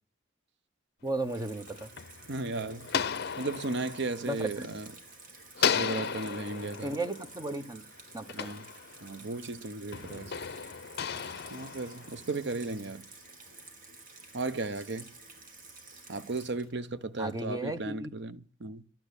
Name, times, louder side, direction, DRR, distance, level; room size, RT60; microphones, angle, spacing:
voice 1, 1.0-1.9 4.3-4.7 6.8-7.8 8.1-8.5 17.2-18.1, right 2 dB, 20° right, 1.1 m, -35 dB
Water tap faucet / Sink (filling or washing), 1.0-17.8, right 3 dB, 45° right, 2.5 m, -52 dB
sound 1, 1.4-5.1 5.6-9.3 9.9-12.6, left 7 dB, 55° left, 0.6 m, -35 dB
voice 2, 2.3-2.9 3.4-4.9 5.6-6.9 8.3-8.7 9.0-10.3 11.5-13.0 14.3-15.1 16.1-18.8, right 3 dB, 60° right, 0.8 m, -35 dB
12.0 x 8.8 x 8.3 m
head